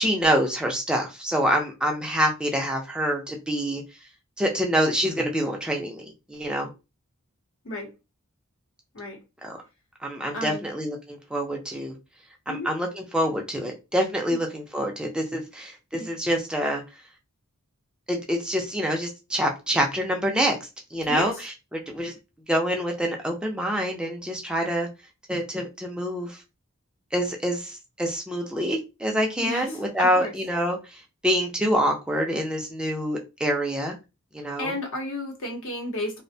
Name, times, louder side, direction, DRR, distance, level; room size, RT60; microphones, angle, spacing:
voice 1, 0.0-3.8 4.4-6.0 6.3-6.7 9.4-9.6 10.0-11.9 12.5-16.8 18.1-20.6 20.9-22.1 22.5-24.9 25.3-26.4 27.1-34.0 34.3-34.7, equal, 5° right, 0.4 m, -26 dB
voice 2, 10.3-10.7 12.5-12.7 14.3-14.4 16.0-16.1 21.1-21.4 29.4-30.3 34.6-36.2, left 1 dB, 65° left, 0.8 m, -32 dB
2.4 x 2.1 x 2.6 m
head